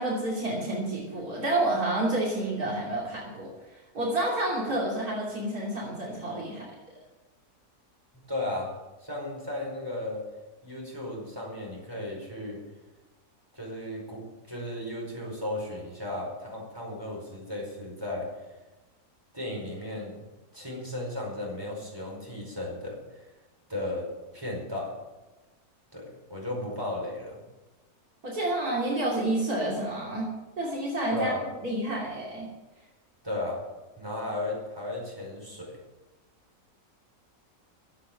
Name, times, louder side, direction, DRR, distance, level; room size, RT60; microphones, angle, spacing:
voice 1, 0.0-6.7 28.2-30.3 30.6-31.3 31.6-32.5, right 1 dB, 75° right, -4 dB, 3.5 m, -29 dB
voice 2, 8.1-8.7 9.0-10.2 10.6-12.6 13.5-18.3 19.3-20.2 20.5-23.2 23.7-24.0 24.3-24.9 25.9-27.4 31.1-31.4 33.2-33.6 34.0-35.8, left 1 dB, 15° right, -2 dB, 4.9 m, -35 dB
14.5 x 8.3 x 7.6 m, 1.1 s
omnidirectional pair, 1.6 m